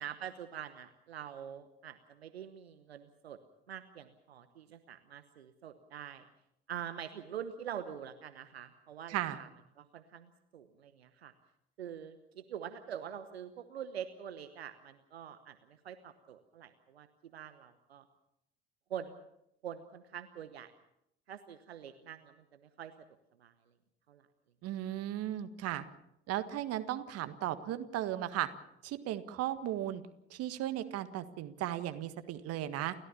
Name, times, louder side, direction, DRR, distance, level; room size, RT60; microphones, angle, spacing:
voice 1, 0.0-3.4 3.7-6.2 6.7-9.5 9.8-11.3 11.8-18.1 18.9-19.2 19.6-20.7 21.3-22.9 23.4-23.5 24.1-24.3, right 9 dB, 80° right, 11 dB, 1.1 m, -45 dB
voice 2, 9.1-9.4 24.6-25.8 26.3-28.5 28.8-30.0 30.3-32.9, right 13 dB, 50° right, 11 dB, 1.7 m, -36 dB
29.5 x 14.0 x 7.0 m, 0.81 s
figure-of-eight pair, 60°, 31 cm